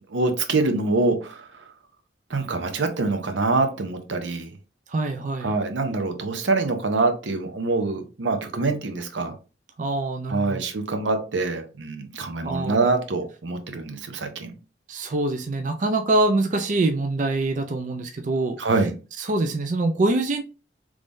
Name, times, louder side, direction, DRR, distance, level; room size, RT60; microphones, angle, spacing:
voice 1, 0.1-1.7 2.3-4.5 5.4-9.3 10.3-14.5 18.6-18.9, right 3 dB, 85° right, 6 dB, 0.7 m, -25 dB
voice 2, 4.9-5.5 9.8-10.6 12.4-12.9 14.9-18.6 19.2-20.4, right 2 dB, 45° right, 5 dB, 0.4 m, -24 dB
3.6 x 3.2 x 2.5 m, 0.33 s
head